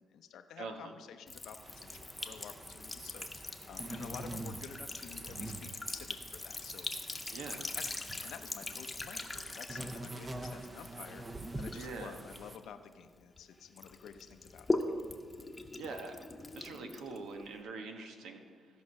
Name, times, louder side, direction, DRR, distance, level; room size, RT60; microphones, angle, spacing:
voice 1, 0.0-1.9 2.2-6.9 7.7-14.7, left 8 dB, 75° left, 8 dB, 0.7 m, -51 dB
voice 2, 0.6-0.9 4.6-4.7 7.3-7.7 11.7-12.2 15.8-16.2 16.5-18.7, right 4 dB, 80° right, 4 dB, 1.3 m, -44 dB
Sink (filling or washing) / Trickle dribble, 1.3-13.4 13.8-17.6, left 2 dB, 15° left, 1.0 m, -41 dB
sound 1, 1.6-12.6, right 2 dB, 25° right, 0.8 m, -46 dB
15.0 x 5.2 x 6.4 m, 2.1 s
cardioid pair, 90°, 0 cm